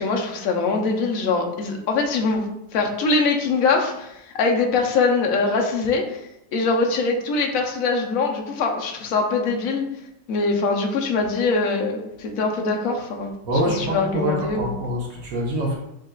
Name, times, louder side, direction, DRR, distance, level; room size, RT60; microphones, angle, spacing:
voice 1, 0.0-2.4 2.7-6.2 6.5-9.9 10.3-13.3 13.6-14.7, left 4 dB, 65° left, 2 dB, 1.0 m, -23 dB
voice 2, 13.4-15.8, equal, 60° right, -3 dB, 1.2 m, -25 dB
6.3 x 2.4 x 2.3 m, 0.82 s
omnidirectional pair, 1.8 m